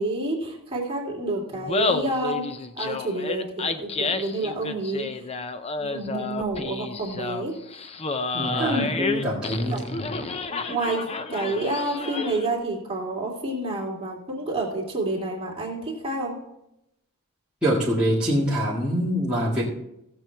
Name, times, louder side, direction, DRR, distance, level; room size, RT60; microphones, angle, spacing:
voice 1, 0.0-2.4 2.7-5.1 5.8-7.5 8.6-8.9 9.7-9.8 10.2-10.3 10.7-11.0 11.3-16.4, right 2 dB, 25° right, -4 dB, 2.5 m, -29 dB
Laughter, 1.5-12.6, left 3 dB, 25° left, 0.5 m, -30 dB
voice 2, 8.3-10.1 17.6-19.7, equal, 5° right, -9 dB, 1.9 m, -25 dB
17.0 x 7.1 x 3.4 m, 0.85 s
head